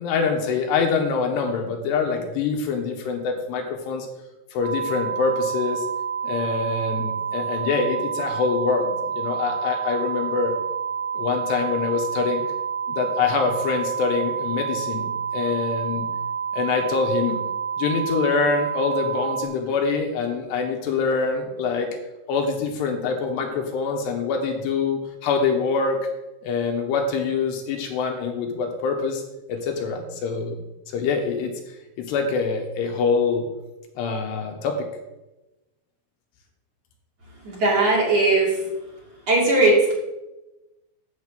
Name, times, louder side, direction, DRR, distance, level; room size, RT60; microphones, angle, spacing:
voice 1, 0.0-4.1 4.5-5.9 6.2-10.6 11.1-12.4 12.9-16.1 16.5-17.4 17.8-21.9 22.3-26.0 26.4-29.2 29.5-30.6 30.9-31.5 32.0-33.5 34.0-34.9, left 5 dB, 75° left, 3 dB, 3.2 m, -25 dB
sound 1, 4.6-19.4, right 7 dB, 90° left, 1.1 m, -29 dB
voice 2, 37.4-38.6 39.3-40.0, right 2 dB, 40° right, -4 dB, 3.4 m, -18 dB
12.0 x 5.8 x 7.6 m, 1.0 s
omnidirectional pair, 5.2 m